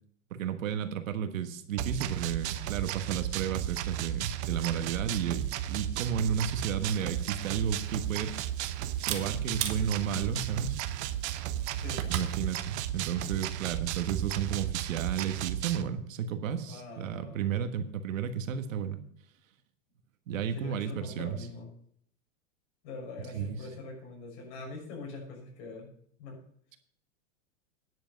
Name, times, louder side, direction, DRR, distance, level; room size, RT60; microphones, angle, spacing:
voice 1, 0.3-8.4 9.1-10.8 12.1-19.0 20.3-21.4 23.3-23.6, right 8 dB, 90° right, 9 dB, 1.5 m, -32 dB
sound 1, 1.8-15.8, right 12 dB, 60° right, 0.9 m, -34 dB
Camera, 6.8-12.4, right 9 dB, 40° right, 1.3 m, -40 dB
voice 2, 11.8-12.1 16.6-17.4 20.5-21.7 22.8-25.9 26.2-26.4, left 3 dB, 55° left, -1 dB, 6.2 m, -43 dB
10.0 x 7.8 x 6.7 m, 0.64 s
supercardioid pair, 145°, 38 cm